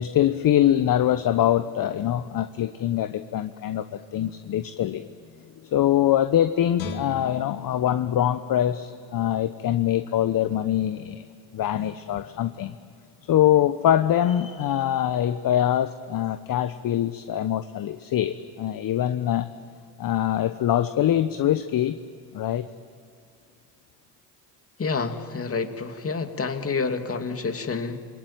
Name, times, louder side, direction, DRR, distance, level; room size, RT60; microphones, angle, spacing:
voice 1, 0.0-5.1 5.7-11.3 11.5-12.7 13.3-19.5 20.0-22.0 22.3-22.6, left 11 dB, 45° left, 11 dB, 1.2 m, -23 dB
Guitar, 6.8-9.9 10.3-10.5, left 5 dB, 70° left, 2.4 m, -40 dB
voice 2, 24.8-28.0, left 4 dB, 30° left, 7 dB, 2.6 m, -28 dB
28.0 x 22.0 x 9.1 m, 2.3 s
hypercardioid pair, 60°, 48 cm